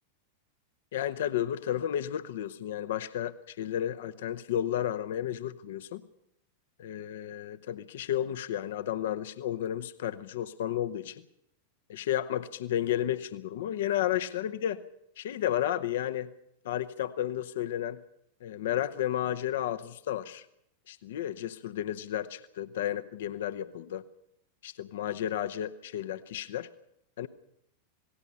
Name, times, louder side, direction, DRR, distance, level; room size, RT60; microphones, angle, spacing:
voice 1, 0.9-6.0 6.8-11.2 11.9-14.8 15.2-16.3 16.6-18.0 18.4-20.5 20.9-24.0 24.6-26.7 27.2-27.3, left 11 dB, 55° left, 11 dB, 0.8 m, -32 dB
27.5 x 18.5 x 5.6 m, 0.79 s
figure-of-eight pair, 90°, 0 cm